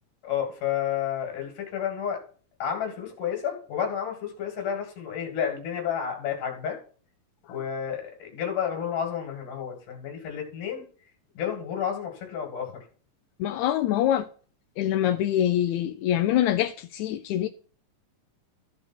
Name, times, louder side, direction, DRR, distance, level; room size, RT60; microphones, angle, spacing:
voice 1, 0.2-2.2 2.6-6.8 7.5-10.8 11.4-12.8, left 8 dB, 70° left, 3.6 m, -31 dB
voice 2, 13.4-14.3 14.8-17.5, left 11 dB, 90° left, 1.6 m, -24 dB
14.0 x 5.0 x 4.4 m
omnidirectional pair, 3.9 m